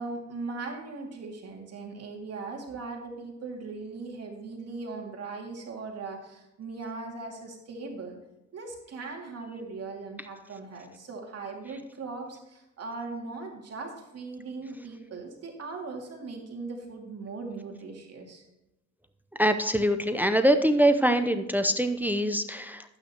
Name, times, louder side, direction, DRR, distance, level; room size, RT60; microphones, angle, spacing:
voice 1, 0.0-8.2 8.5-18.4, right 3 dB, 55° right, 1 dB, 2.5 m, -39 dB
voice 2, 19.4-22.8, right 1 dB, 5° right, 8 dB, 0.6 m, -23 dB
11.5 x 9.1 x 3.0 m, 0.94 s
cardioid pair, 90°, 30 cm